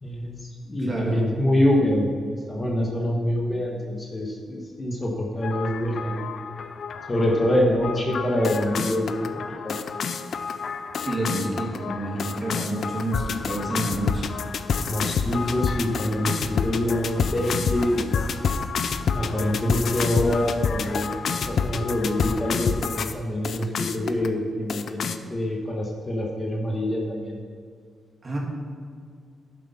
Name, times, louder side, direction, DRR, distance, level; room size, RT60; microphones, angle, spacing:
voice 1, 0.0-6.2 7.1-9.8 14.9-18.1 19.1-27.4, left 1 dB, 20° left, -1 dB, 1.4 m, -25 dB
voice 2, 0.8-1.3 11.1-14.2 28.2-28.4, right 1 dB, 30° right, -2 dB, 2.5 m, -29 dB
sound 1, 5.4-23.1 23.4-24.3 24.7-25.2, left 5 dB, 60° left, 0.6 m, -29 dB
11.5 x 7.6 x 5.6 m, 2.1 s
wide cardioid pair, 140°, 0 cm